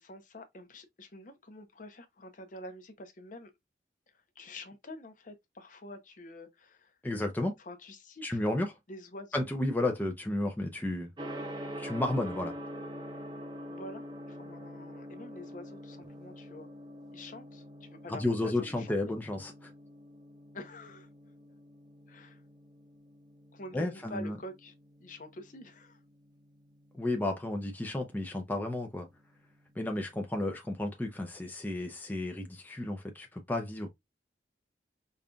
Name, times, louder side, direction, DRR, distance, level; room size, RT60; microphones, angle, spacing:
voice 1, 0.0-3.5 4.4-6.9 7.6-8.6 8.9-9.5 13.7-16.7 17.1-19.1 20.5-21.1 22.1-22.4 23.5-24.7 25.0-26.0, left 1 dB, 45° left, 0.7 m, -47 dB
voice 2, 7.0-7.6 8.2-8.7 9.3-11.1 11.8-12.5 18.1-19.7 23.7-24.4 26.9-29.1 29.8-33.9, left 1 dB, 10° left, 0.5 m, -32 dB
Gong, 11.2-30.1, equal, 25° right, 0.8 m, -46 dB
5.2 x 2.5 x 2.2 m
head